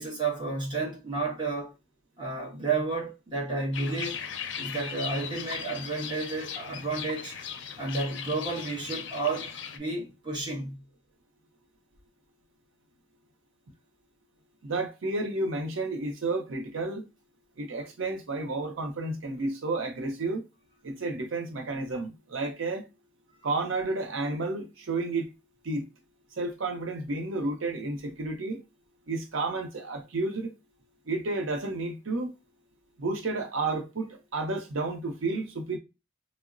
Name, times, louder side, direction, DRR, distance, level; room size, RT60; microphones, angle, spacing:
voice 1, 0.0-1.7 2.2-4.2 4.6-7.3 7.8-10.8, right 3 dB, 25° right, 1.0 m, -31 dB
sound 1, 3.7-9.8, left 7 dB, 70° left, 0.4 m, -38 dB
voice 2, 14.6-17.0 17.6-20.4 20.8-22.9 23.4-25.3 25.6-25.9 26.4-28.6 29.1-30.5 31.1-32.3 33.0-35.8, right 3 dB, 90° right, 0.6 m, -31 dB
3.7 x 2.0 x 2.4 m
head